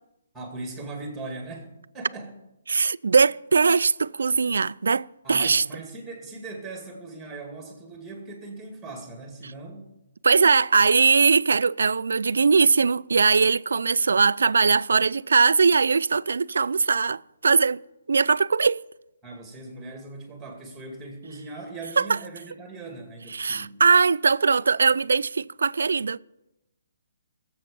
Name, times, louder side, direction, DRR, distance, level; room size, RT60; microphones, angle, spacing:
voice 1, 0.3-1.7 1.9-2.4 5.2-9.9 19.2-23.8, right 2 dB, 5° right, 2.2 m, -39 dB
voice 2, 2.7-5.6 10.2-17.8 18.1-18.8 22.0-22.1 23.4-26.2, right 5 dB, 85° right, 0.3 m, -20 dB
20.0 x 7.8 x 5.3 m
hypercardioid pair, 170°, 0 cm